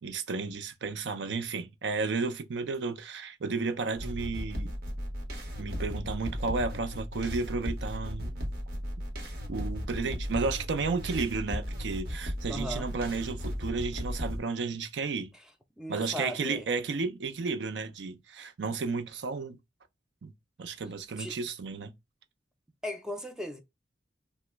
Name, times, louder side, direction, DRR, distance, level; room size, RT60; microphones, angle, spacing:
voice 1, 0.0-4.7 5.6-8.5 9.5-15.3 15.9-19.6 20.2-20.3 20.6-21.9, right 4 dB, 80° right, 0.5 m, -33 dB
sound 1, 4.0-14.4, equal, 60° right, 0.9 m, -36 dB
voice 2, 12.5-12.9 15.3-15.4 15.8-16.7 21.2-21.4 22.8-23.6, left 1 dB, 5° right, 0.3 m, -37 dB
2.9 x 2.1 x 3.2 m
head